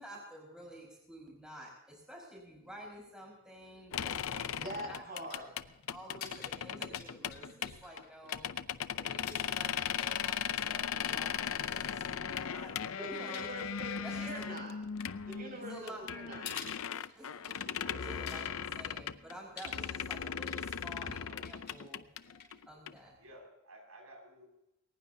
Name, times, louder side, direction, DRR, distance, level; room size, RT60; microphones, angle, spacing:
voice 1, 0.0-5.0 5.9-9.7 10.0-13.5 14.0-14.6 15.7-16.4 16.8-23.2, equal, 5° right, -2 dB, 5.0 m, -51 dB
sound 1, 3.9-19.4 19.6-22.9, left 8 dB, 70° left, 0.6 m, -38 dB
voice 2, 4.6-5.5 13.0-14.7 15.2-16.4, right 1 dB, 40° right, 0 dB, 6.1 m, -43 dB
sound 2, 4.8-23.4, left 6 dB, 45° left, 3.7 m, -53 dB
voice 3, 9.0-9.8 17.6-18.3 21.3-21.5 23.2-24.5, equal, 80° right, 1 dB, 6.3 m, -52 dB
21.0 x 19.0 x 2.8 m, 0.87 s
head